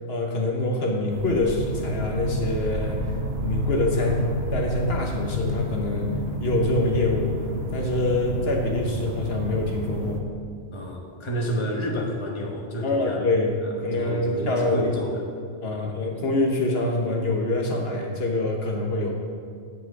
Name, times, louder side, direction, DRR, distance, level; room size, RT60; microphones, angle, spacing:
voice 1, 0.1-3.1 3.4-4.2 4.5-7.4 7.7-10.2 12.8-13.5 13.8-14.9 15.6-19.1, left 2 dB, 65° left, 0 dB, 1.3 m, -25 dB
sound 1, 1.1-10.2, equal, 70° right, 1.3 m, -29 dB
voice 2, 10.7-13.4 13.9-15.2 15.7-16.0, equal, 25° left, 0 dB, 1.1 m, -30 dB
8.3 x 5.6 x 8.0 m, 2.2 s
omnidirectional pair, 1.1 m